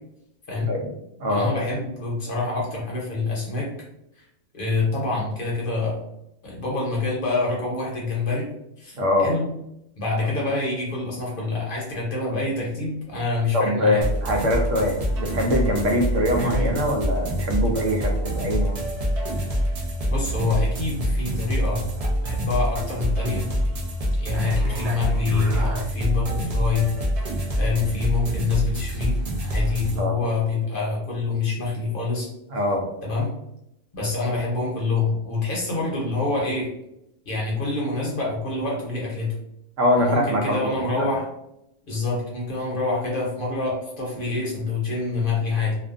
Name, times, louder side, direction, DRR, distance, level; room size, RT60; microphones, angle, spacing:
voice 1, 1.3-3.7 4.2-4.3 4.5-6.0 6.4-8.5 8.8-9.4 10.0-14.0 20.1-21.8 22.2-23.5 24.2-26.9 27.6-32.3 33.0-33.3 33.9-36.7 37.3-39.3 40.0-41.3 41.9-45.8, left 3 dB, 50° left, -3 dB, 0.8 m, -26 dB
voice 2, 8.9-9.3 13.5-18.8 30.0-30.2 32.5-32.9 39.8-41.1, left 1 dB, 85° right, 1 dB, 1.0 m, -23 dB
sound 1, 14.0-30.0, equal, 60° right, 0.3 m, -26 dB
2.5 x 2.2 x 2.4 m, 0.81 s
omnidirectional pair, 1.3 m